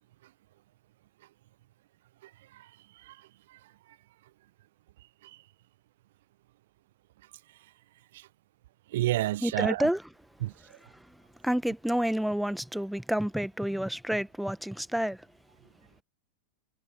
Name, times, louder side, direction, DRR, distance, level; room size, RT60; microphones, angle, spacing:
voice 1, 3.0-3.6 5.2-5.4 8.1-8.3 8.9-9.9 10.4-10.5, right 15 dB, 55° right, 0.7 m, -31 dB
voice 2, 9.4-10.0 10.6-15.3, equal, ahead, 1.4 m, -30 dB
figure-of-eight pair, 90°, 0 cm